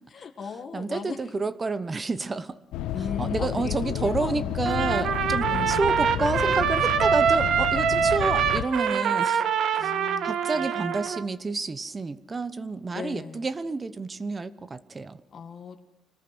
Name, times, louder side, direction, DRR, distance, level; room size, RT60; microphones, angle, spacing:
voice 1, 0.1-1.3 2.9-4.7 5.5-5.8 9.8-11.0 12.9-13.5 15.3-15.8, left 6 dB, 35° left, 3 dB, 1.9 m, -38 dB
voice 2, 0.7-2.6 3.2-9.4 9.8-9.9 10.2-15.2, right 3 dB, 20° right, 15 dB, 1.0 m, -29 dB
sound 1, 2.7-8.6, left 12 dB, 80° left, 1.0 m, -31 dB
Trumpet, 4.7-11.2, right 7 dB, 60° right, 1.6 m, -24 dB
26.0 x 19.5 x 6.1 m, 0.83 s
cardioid pair, 140°, 0 cm